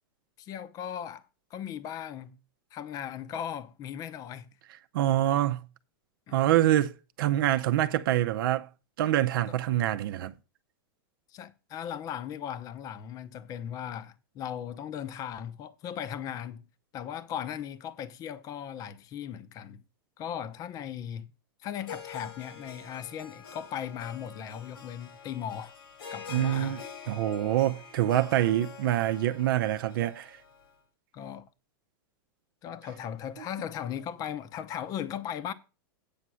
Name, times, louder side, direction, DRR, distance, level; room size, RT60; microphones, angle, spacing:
voice 1, 0.4-1.2 1.5-2.4 2.7-4.5 6.3-6.4 9.5-9.6 11.3-16.6 16.9-19.8 20.2-21.3 21.6-25.7 26.1-26.8 31.1-31.5 32.6-35.5, left 9 dB, 30° left, 0.7 m, -37 dB
voice 2, 4.9-5.6 6.3-6.9 7.2-8.7 9.0-10.3 26.3-26.8 27.1-30.3, right 13 dB, 65° right, 0.7 m, -25 dB
Harp, 21.7-30.8, left 6 dB, 90° left, 2.9 m, -46 dB
8.7 x 5.6 x 6.2 m
supercardioid pair, 150°, 12 cm